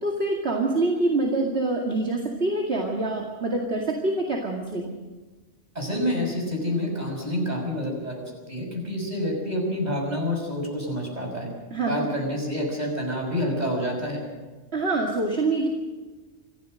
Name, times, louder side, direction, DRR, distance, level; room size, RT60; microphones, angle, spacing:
voice 1, 0.0-4.9 11.7-12.1 14.7-15.7, right 2 dB, 55° right, 0 dB, 2.5 m, -25 dB
voice 2, 5.7-11.5 11.8-14.2, equal, 35° right, 1 dB, 6.4 m, -28 dB
26.5 x 15.5 x 6.5 m, 1.3 s
omnidirectional pair, 1.3 m